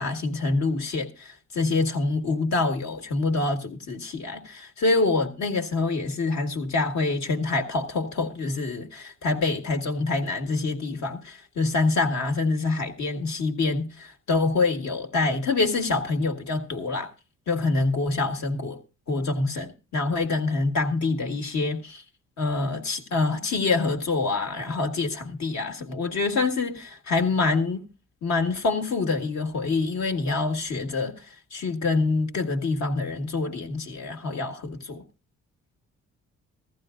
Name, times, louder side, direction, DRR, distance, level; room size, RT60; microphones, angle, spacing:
voice 1, 0.0-17.1 17.5-18.8 19.1-22.0 22.4-27.9 28.2-35.0, left 3 dB, 65° left, 1.8 m, -26 dB
15.0 x 15.0 x 2.5 m
cardioid pair, 90°, 30 cm